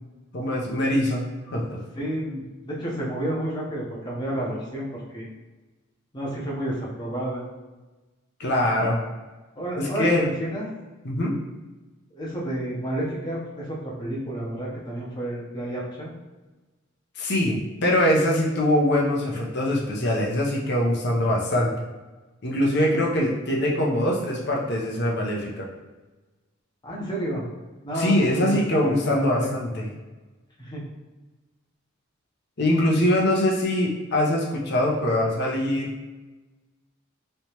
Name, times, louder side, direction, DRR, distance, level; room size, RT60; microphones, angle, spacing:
voice 1, 0.3-1.8 8.4-9.0 9.7-10.3 11.0-11.4 17.2-21.7 22.4-25.7 27.9-29.9 32.6-35.9, left 1 dB, 50° left, -2 dB, 0.7 m, -23 dB
voice 2, 1.9-5.3 6.1-7.4 9.6-10.7 12.1-16.1 26.8-27.5 27.8-29.5 30.6-30.9, right 1 dB, 20° left, -5 dB, 0.8 m, -30 dB
3.2 x 2.9 x 2.9 m, 1.2 s
head